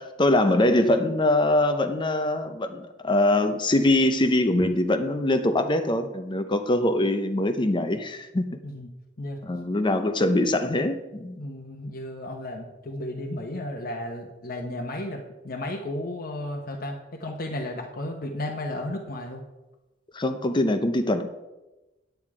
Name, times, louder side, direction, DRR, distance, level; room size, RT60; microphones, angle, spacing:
voice 1, 0.0-8.5 9.4-11.4 20.1-21.3, left 1 dB, 25° left, 8 dB, 0.6 m, -23 dB
voice 2, 11.3-19.4, left 1 dB, 55° left, 1 dB, 1.0 m, -34 dB
9.3 x 9.2 x 4.9 m, 1.0 s
head